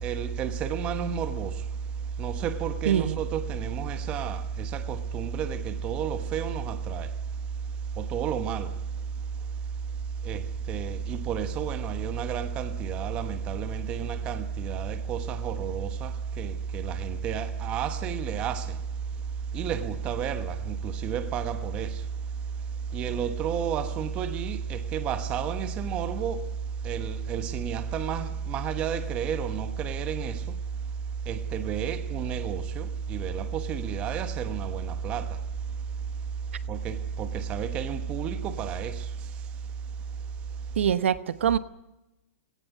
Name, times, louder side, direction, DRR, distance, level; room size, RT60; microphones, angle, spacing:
voice 1, 0.0-1.5 2.2-7.1 8.0-8.7 10.2-18.8 19.5-22.0 22.9-26.5 26.8-30.4 31.3-35.4 36.7-39.0, right 7 dB, 15° right, 1.1 m, -31 dB
voice 2, 2.9-3.2 40.8-41.6, right 9 dB, 55° right, 1.1 m, -24 dB
18.0 x 18.0 x 9.3 m
hypercardioid pair, 180°, 8 cm